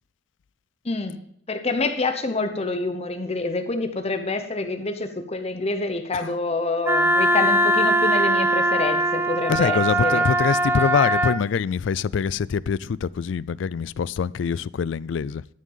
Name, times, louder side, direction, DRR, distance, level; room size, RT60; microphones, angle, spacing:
voice 1, 0.8-1.2 1.5-10.2, left 3 dB, 35° left, 1.0 m, -27 dB
Wind instrument woodwind instrument, 6.8-11.4, right 1 dB, 15° right, 0.6 m, -21 dB
voice 2, 9.5-15.4, left 6 dB, 75° left, 0.4 m, -24 dB
13.0 x 6.3 x 5.5 m
head